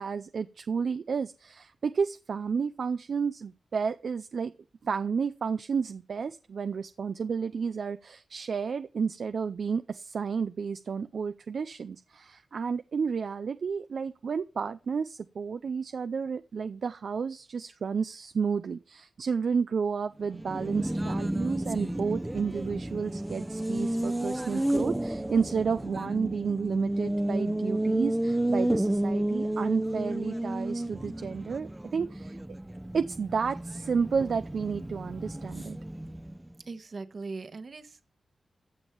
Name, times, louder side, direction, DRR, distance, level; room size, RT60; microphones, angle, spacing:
voice 1, 0.0-4.5 4.8-32.4 32.9-35.8, right 5 dB, 65° right, 10 dB, 0.5 m, -31 dB
Race car auto racing, 20.2-36.5, right 1 dB, 10° right, 0.8 m, -31 dB
voice 2, 36.7-38.0, right 3 dB, 50° right, 9 dB, 1.3 m, -40 dB
14.5 x 7.2 x 4.6 m, 0.35 s
wide cardioid pair, 100°, 0 cm